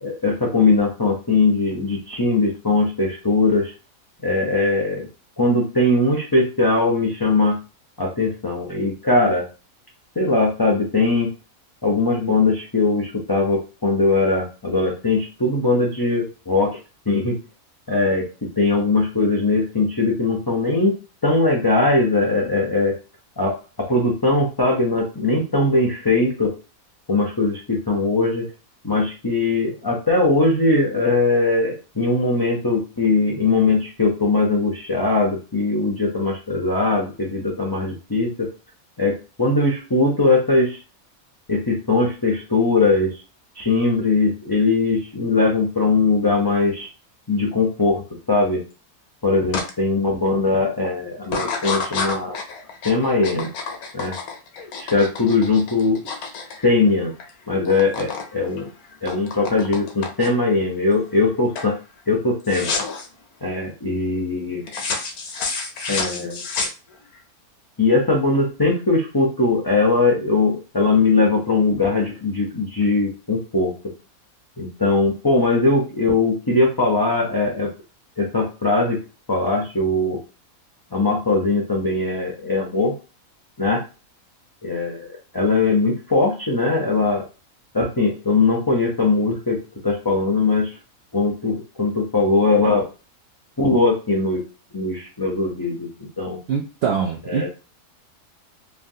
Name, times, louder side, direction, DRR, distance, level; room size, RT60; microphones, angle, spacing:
voice 1, 0.0-3.7 4.2-5.1 5.4-7.6 8.0-9.4 10.2-11.3 11.8-16.8 17.1-17.4 17.9-18.2 18.6-20.9 21.2-22.9 23.4-26.5 27.1-28.5 28.8-38.5 39.0-40.8 41.5-43.1 43.6-46.9 47.3-48.0 48.3-48.6 49.2-52.4 52.8-53.5 53.9-54.1 54.8-56.0 56.6-57.1 57.5-58.7 59.0-61.7 62.1-62.7 63.4-64.6 65.9-66.4 67.8-73.7 74.6-77.7 78.2-79.0 79.3-80.2 80.9-82.9 83.6-83.8 84.6-85.1 85.3-87.2 87.7-90.7 91.1-92.9 93.6-94.4 94.7-95.9 96.2-96.4 97.3-97.5, left 3 dB, 35° left, -3 dB, 0.3 m, -20 dB
sound 1, 49.5-49.7 50.2-50.6 51.2-57.3 57.5-58.3 58.6-60.5 61.0-61.3 61.5-61.8 62.4-63.1 64.7-67.2, left 4 dB, 85° left, 1.2 m, -29 dB
voice 2, 96.5-97.5, right 6 dB, 70° right, 0 dB, 0.5 m, -23 dB
3.2 x 2.3 x 2.6 m, 0.32 s
omnidirectional pair, 1.5 m